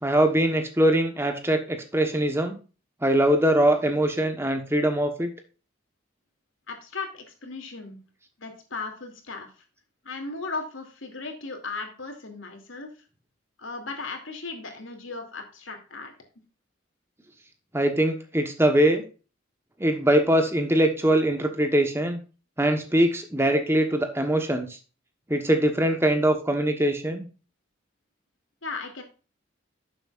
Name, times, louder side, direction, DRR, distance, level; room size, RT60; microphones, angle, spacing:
voice 1, 0.0-2.6 3.0-5.3 17.7-19.0 19.8-22.2 22.6-24.8 25.3-27.3, right 1 dB, 10° right, 6 dB, 1.2 m, -22 dB
voice 2, 6.7-8.0 8.4-9.5 10.0-12.9 13.6-16.1 28.6-29.0, left 3 dB, 80° left, 4 dB, 2.7 m, -36 dB
11.5 x 7.4 x 2.5 m, 0.34 s
head